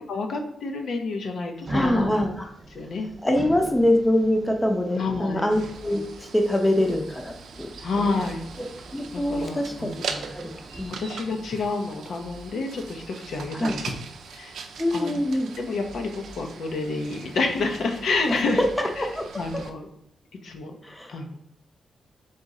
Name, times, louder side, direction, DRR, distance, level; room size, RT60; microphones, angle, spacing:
voice 1, 0.1-2.2 2.7-3.1 4.9-5.5 7.8-8.4 9.1-10.3 11.0-14.0 14.3-14.6 14.9-15.2 15.6-18.6 19.0-19.1 19.4-19.9 20.4-20.8 21.1-21.4, left 3 dB, 75° left, 3 dB, 0.7 m, -29 dB
sound 1, 1.6-11.2, right 1 dB, 35° right, 0.6 m, -42 dB
voice 2, 1.7-2.5 3.2-7.7 8.0-8.2 8.6-8.7 8.9-9.9 10.3-10.5 10.8-11.0 13.6-13.8 14.8-15.5 18.3-19.2 20.8-21.1, left 1 dB, 10° left, 3 dB, 0.6 m, -24 dB
sound 2, 5.5-19.7, right 5 dB, 90° right, 0.5 m, -40 dB
4.0 x 3.0 x 3.7 m, 0.74 s
cardioid pair, 100°, 0 cm